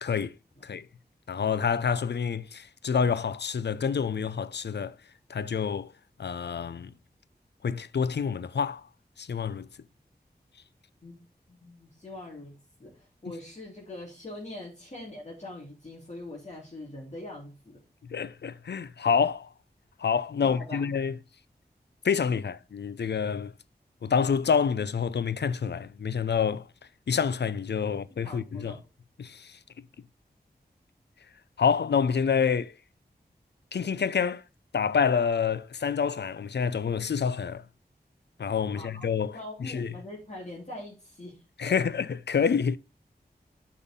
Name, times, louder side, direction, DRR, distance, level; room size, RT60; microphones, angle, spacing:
voice 1, 0.0-0.4 0.6-0.9 1.3-4.9 5.3-5.9 6.2-6.9 7.6-8.9 9.2-9.7 18.1-19.5 20.0-21.2 22.0-23.5 24.0-26.7 27.1-28.7 29.2-29.6 31.6-32.7 33.7-34.4 34.7-37.6 38.4-39.9 41.6-42.8, left 6 dB, 85° left, 0.5 m, -27 dB
voice 2, 11.0-17.8 20.4-21.0 28.2-28.8 38.7-39.1 39.3-41.4 41.7-41.8, left 1 dB, 40° left, 3.4 m, -43 dB
8.0 x 5.8 x 3.6 m
wide cardioid pair, 50°, 17 cm